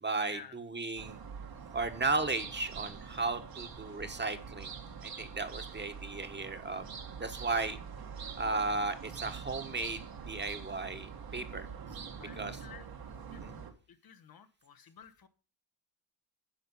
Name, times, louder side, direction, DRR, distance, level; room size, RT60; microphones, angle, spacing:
voice 1, 0.0-1.2 1.7-4.7 5.0-6.9 7.2-7.8 8.4-11.7 12.2-12.6 13.4-13.5, right 3 dB, 25° right, 8 dB, 1.5 m, -35 dB
sound 1, 1.0-13.7, right 6 dB, 55° right, 1.7 m, -45 dB
voice 2, 12.2-12.9 13.3-13.4 13.9-15.3, left 8 dB, 55° left, 10 dB, 1.2 m, -52 dB
10.5 x 5.5 x 5.6 m, 0.38 s
supercardioid pair, 70°, 44 cm